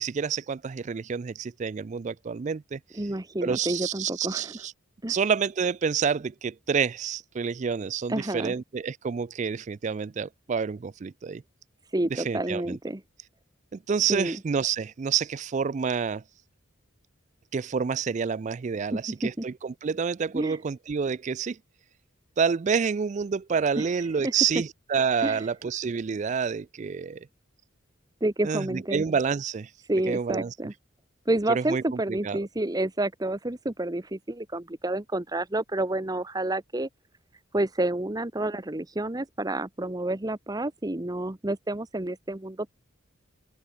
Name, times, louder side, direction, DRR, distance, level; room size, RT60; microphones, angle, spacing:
voice 1, 0.0-2.8 3.4-4.7 5.1-11.4 12.1-12.7 13.7-16.2 17.5-21.6 22.4-27.3 28.4-29.7 30.1-30.5 31.5-31.8 32.1-32.4, right 6 dB, 35° right, 0.3 m, -28 dB
voice 2, 2.9-4.5 5.0-5.1 8.1-8.5 11.9-13.0 14.1-14.4 18.9-19.4 20.3-20.6 23.8-23.9 24.2-24.3 25.2-25.4 28.2-29.0 29.9-30.7 31.3-36.9 37.5-42.7, right 1 dB, 20° right, 0.9 m, -29 dB
head